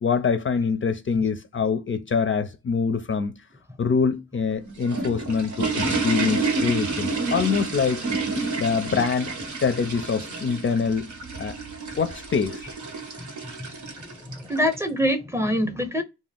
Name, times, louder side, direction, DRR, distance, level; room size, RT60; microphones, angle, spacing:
voice 1, 0.0-3.3 3.8-8.0 8.5-9.4 9.6-11.1 11.4-11.6 12.0-12.6, left 5 dB, 45° left, 0.4 m, -24 dB
sound 1, 4.5-14.8, right 3 dB, 80° right, 1.0 m, -29 dB
voice 2, 13.6-16.0, equal, 10° right, 0.7 m, -25 dB
2.4 x 2.2 x 3.5 m
cardioid pair, 75°, 29 cm